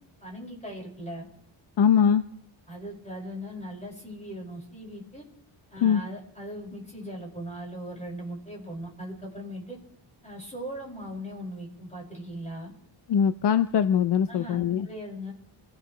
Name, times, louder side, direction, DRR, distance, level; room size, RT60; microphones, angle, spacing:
voice 1, 0.2-1.3 2.7-5.2 5.7-9.8 10.2-12.7 14.3-15.3, equal, 15° left, -3 dB, 6.0 m, -39 dB
voice 2, 1.8-2.2 5.8-6.0 13.1-14.9, left 8 dB, 60° left, 11 dB, 0.7 m, -22 dB
28.0 x 15.5 x 3.3 m, 0.73 s
wide cardioid pair, 170°, 46 cm